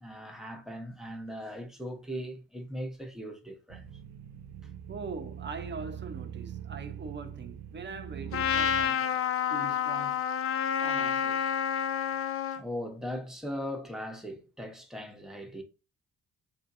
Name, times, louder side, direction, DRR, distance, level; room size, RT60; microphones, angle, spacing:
voice 1, 0.0-3.9 12.5-15.6, equal, ahead, 1.1 m, -39 dB
sound 1, 3.7-8.9, right 9 dB, 65° right, 0.5 m, -42 dB
voice 2, 4.9-9.2 9.5-10.3 10.8-11.6, right 4 dB, 35° right, 0.9 m, -42 dB
Trumpet, 8.3-12.6, left 8 dB, 45° left, 0.5 m, -29 dB
7.1 x 2.7 x 2.6 m
cardioid pair, 90°, 30 cm